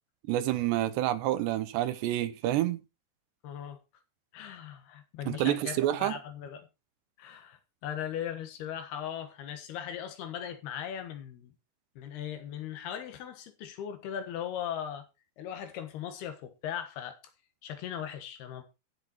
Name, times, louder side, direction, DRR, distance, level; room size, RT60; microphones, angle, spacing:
voice 1, 0.3-2.8 5.3-6.2, right 13 dB, 85° right, 3.1 m, -28 dB
voice 2, 3.4-3.8 4.3-6.7 7.2-11.5 12.0-15.1 15.4-17.2 17.6-18.6, left 9 dB, 70° left, 3.2 m, -38 dB
15.0 x 6.6 x 4.2 m
omnidirectional pair, 4.9 m